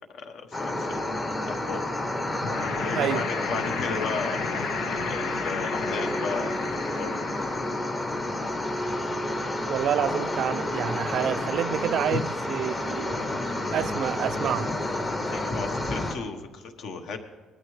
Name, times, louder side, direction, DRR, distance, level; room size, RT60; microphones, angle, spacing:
voice 1, 0.1-1.0 1.4-1.8 2.8-4.4 4.9-6.6 6.9-7.2 12.1-12.2 15.3-17.2, left 4 dB, 55° left, 1.2 m, -34 dB
sound 1, 0.5-16.1, left 1 dB, 20° left, 1.0 m, -30 dB
sound 2, 2.4-7.9, left 5 dB, 90° left, 1.2 m, -34 dB
voice 2, 9.7-14.7, right 10 dB, 50° right, 0.3 m, -29 dB
20.0 x 13.0 x 3.3 m
cardioid pair, 175°, 0 cm